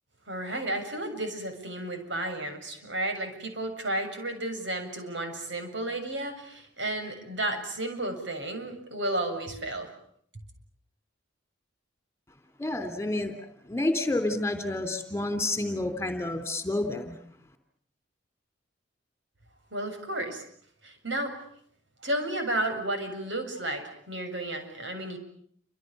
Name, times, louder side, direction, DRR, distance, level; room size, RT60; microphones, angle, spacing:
voice 1, 0.3-9.9 19.7-20.4 20.8-21.4 22.0-25.2, right 1 dB, 70° right, 6 dB, 7.2 m, -32 dB
voice 2, 12.6-13.3 13.7-17.2, left 2 dB, 15° left, 8 dB, 3.3 m, -29 dB
29.5 x 27.0 x 6.9 m, 0.63 s
head